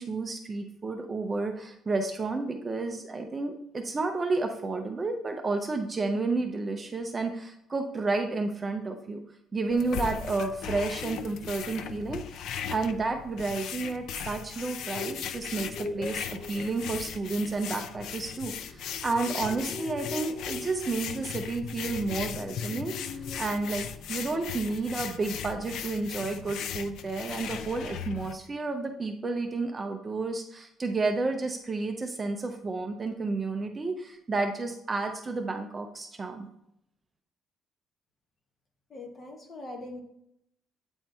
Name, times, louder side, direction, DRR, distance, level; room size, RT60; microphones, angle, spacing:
voice 1, 0.0-9.2 9.5-12.4 12.7-36.5, right 3 dB, 20° right, 4 dB, 0.5 m, -31 dB
sound 1, 9.7-28.3, left 8 dB, 65° left, 0.4 m, -38 dB
sound 2, 14.6-23.9 24.2-24.5 24.8-24.9, left 2 dB, 45° left, 1.4 m, -43 dB
voice 2, 38.9-40.0, left 2 dB, 25° left, 2 dB, 1.1 m, -41 dB
8.6 x 4.4 x 3.4 m, 0.77 s
cardioid pair, 170°, 0 cm